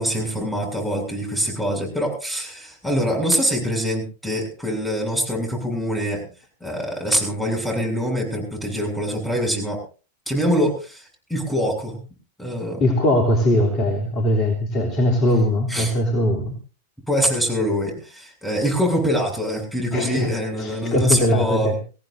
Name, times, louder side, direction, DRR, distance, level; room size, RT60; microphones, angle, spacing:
voice 1, 0.0-6.3 6.6-9.8 10.3-12.0 12.4-12.8 15.7-15.9 17.1-21.7, equal, 5° left, 2 dB, 7.7 m, -24 dB
voice 2, 12.8-16.5 19.9-20.3 20.6-21.7, left 1 dB, 35° left, 1 dB, 3.3 m, -20 dB
25.0 x 17.5 x 2.7 m, 0.36 s
figure-of-eight pair, 95°, 0 cm